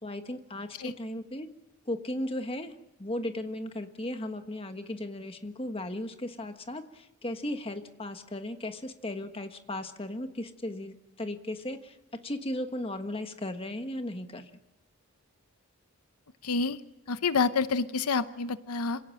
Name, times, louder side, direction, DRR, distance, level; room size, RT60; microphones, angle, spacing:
voice 1, 0.0-1.5 1.9-2.7 3.0-12.0 12.2-14.5, left 1 dB, 25° left, 7 dB, 1.4 m, -36 dB
voice 2, 16.4-16.8 17.1-19.0, left 4 dB, 90° left, 13 dB, 0.8 m, -28 dB
27.0 x 17.5 x 7.8 m, 0.93 s
head